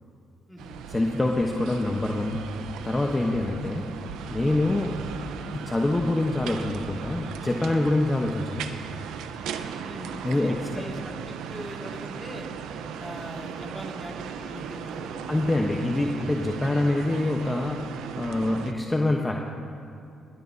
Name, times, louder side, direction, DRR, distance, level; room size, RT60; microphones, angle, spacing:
sound 1, 0.6-18.7, right 7 dB, 90° right, 0.8 m, -37 dB
voice 1, 0.9-2.4 2.8-3.9 4.3-5.0 5.6-8.8 10.2-10.6 15.3-17.8 18.2-19.4, left 2 dB, 20° left, 1 dB, 1.1 m, -25 dB
voice 2, 9.8-12.5 13.0-15.4, equal, ahead, -1 dB, 2.4 m, -41 dB
20.0 x 19.0 x 2.8 m, 2.5 s
cardioid pair, 90°, 0 cm